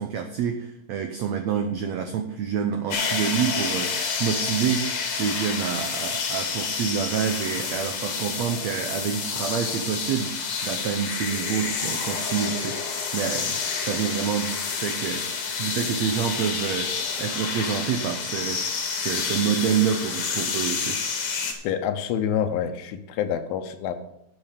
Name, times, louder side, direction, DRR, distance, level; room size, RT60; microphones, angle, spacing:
voice 1, 0.0-16.9 17.2-18.6 19.0-21.0, right 8 dB, 75° right, 5 dB, 1.6 m, -28 dB
sound 1, 2.9-21.5, left 5 dB, 55° left, 2.7 m, -29 dB
voice 2, 21.6-24.0, left 9 dB, 85° left, 7 dB, 2.6 m, -27 dB
12.0 x 7.8 x 5.2 m, 0.81 s
omnidirectional pair, 4.1 m